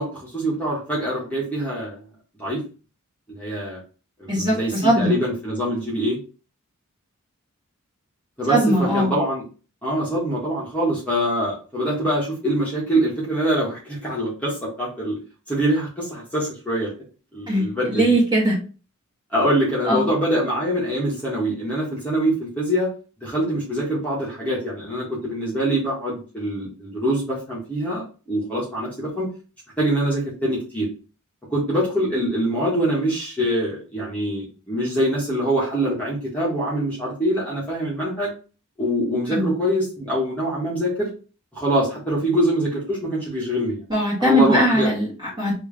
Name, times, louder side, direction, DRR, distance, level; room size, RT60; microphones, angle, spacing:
voice 1, 0.0-2.0 2.4-2.6 3.3-3.8 4.2-6.2 8.4-9.4 9.8-15.2 15.5-16.9 17.3-18.2 19.3-22.9 23.2-28.0 28.3-29.3 29.8-30.9 31.5-38.3 38.8-41.1 41.5-43.8 44.2-44.9, right 1 dB, 5° left, -7 dB, 1.4 m, -24 dB
voice 2, 4.8-5.1 8.5-9.1 17.5-18.6 19.9-20.1 39.3-39.5 43.9-45.5, equal, 20° right, -5 dB, 1.7 m, -20 dB
3.4 x 3.0 x 3.3 m, 0.35 s
head